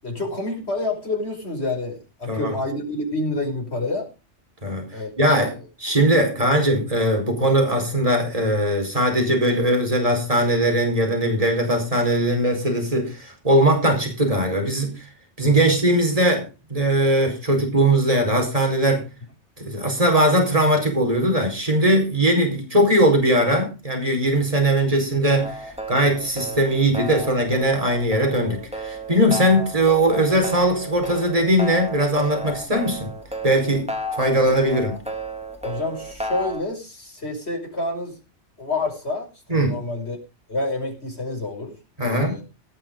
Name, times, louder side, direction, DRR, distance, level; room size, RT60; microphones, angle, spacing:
voice 1, 0.0-4.1 4.9-5.1 5.5-5.7 15.4-15.7 35.6-38.2 38.6-40.2 40.5-42.4, left 2 dB, 60° left, 2 dB, 5.6 m, -28 dB
voice 2, 5.2-5.5 5.8-15.0 15.4-16.4 16.7-19.0 19.6-33.1 33.4-33.9 34.1-35.0 39.5-39.7 42.0-42.3, right 1 dB, 30° right, 3 dB, 5.1 m, -20 dB
sound 1, 25.2-36.6, right 1 dB, 5° right, 2.5 m, -32 dB
18.0 x 7.5 x 5.3 m, 0.31 s
omnidirectional pair, 1.2 m